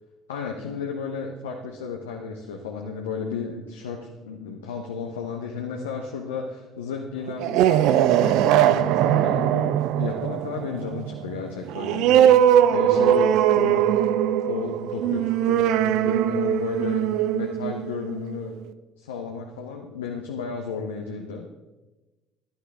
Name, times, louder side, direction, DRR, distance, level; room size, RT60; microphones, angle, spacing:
voice 1, 0.3-14.0 14.5-17.1 17.3-18.6 19.0-21.5, left 6 dB, 75° left, 1 dB, 1.0 m, -33 dB
sound 1, 7.3-18.5, right 10 dB, 55° right, 0.5 m, -21 dB
16.0 x 11.5 x 3.7 m, 1.1 s
figure-of-eight pair, 55°, 0 cm